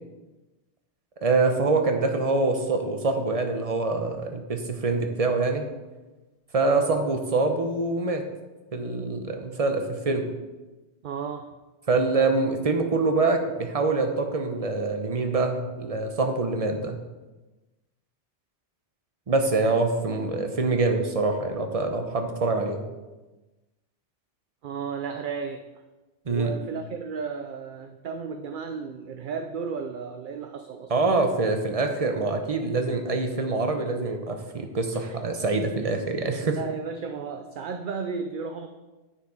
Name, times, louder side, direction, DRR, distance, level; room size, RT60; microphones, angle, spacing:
voice 1, 1.2-5.7 6.5-8.2 8.7-10.3 11.9-17.0 19.3-22.8 26.3-26.5 30.9-36.6, right 3 dB, 35° right, 5 dB, 1.0 m, -25 dB
voice 2, 11.0-11.5 24.6-25.6 26.3-31.2 34.9-35.2 35.8-35.9 36.4-38.7, right 5 dB, 55° right, 6 dB, 0.7 m, -34 dB
9.4 x 6.8 x 4.8 m, 1.1 s
omnidirectional pair, 1.1 m